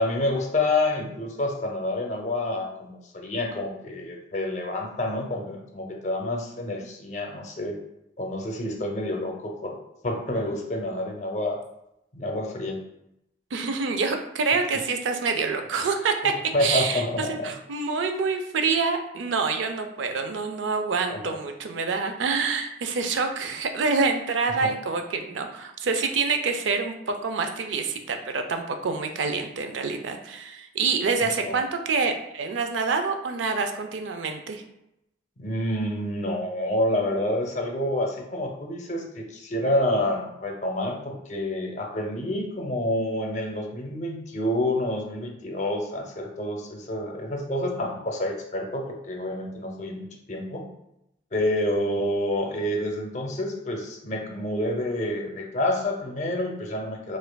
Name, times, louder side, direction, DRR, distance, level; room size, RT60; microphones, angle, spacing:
voice 1, 0.0-7.8 8.2-9.7 10.0-11.6 12.1-12.8 16.2-17.5 21.1-21.4 24.6-24.7 31.2-31.6 35.4-50.7 51.3-57.2, left 1 dB, 40° left, 2 dB, 0.5 m, -28 dB
voice 2, 13.5-16.3 16.6-17.1 17.4-34.6, right 4 dB, 85° right, 6 dB, 0.4 m, -26 dB
4.4 x 2.4 x 2.2 m, 0.83 s
head